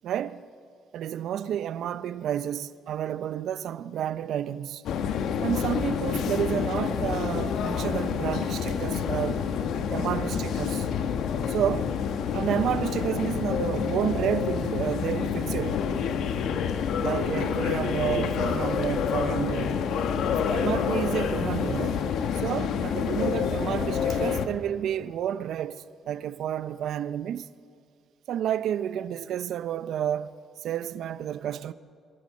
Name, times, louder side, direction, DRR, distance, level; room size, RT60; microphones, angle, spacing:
voice 1, 0.0-0.4 0.9-4.8 5.4-9.4 9.9-10.9 11.5-12.0 12.3-15.8 16.2-16.4 17.0-19.8 20.3-22.0 22.4-27.5 28.3-30.3 30.6-31.7, right 10 dB, 75° right, 0.5 m, -30 dB
sound 1, 4.8-24.5, left 7 dB, 80° left, 1.3 m, -28 dB
23.0 x 15.5 x 7.5 m
cardioid pair, 90°, 0 cm